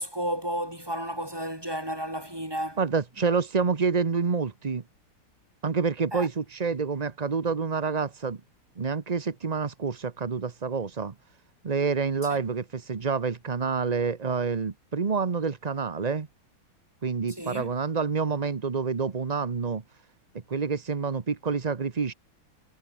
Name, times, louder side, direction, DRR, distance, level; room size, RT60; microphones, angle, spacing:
voice 1, 0.0-2.8 6.1-6.3 12.3-12.4 17.3-17.7, equal, 10° right, 7.8 m, -32 dB
voice 2, 2.8-4.8 5.6-8.4 8.8-11.1 11.6-16.3 17.0-19.8 20.3-22.1, right 5 dB, 50° right, 0.5 m, -28 dB
omnidirectional pair, 2.3 m